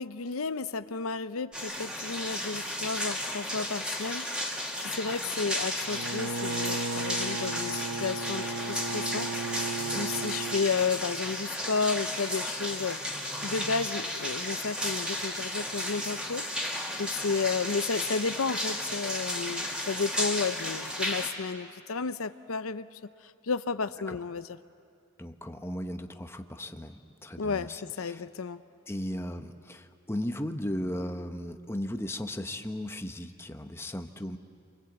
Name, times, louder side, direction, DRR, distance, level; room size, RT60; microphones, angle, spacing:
voice 1, 0.0-9.3 9.6-13.0 13.4-22.9 23.4-24.4 27.4-28.6, left 4 dB, 85° left, 12 dB, 0.7 m, -32 dB
sound 1, 1.5-21.3, left 1 dB, 5° right, 2.6 m, -34 dB
Bowed string instrument, 5.9-10.7, right 3 dB, 90° right, 1.0 m, -35 dB
voice 2, 25.2-28.2 28.9-34.4, left 1 dB, 10° left, 6 dB, 1.0 m, -36 dB
29.5 x 24.0 x 8.1 m, 2.4 s
head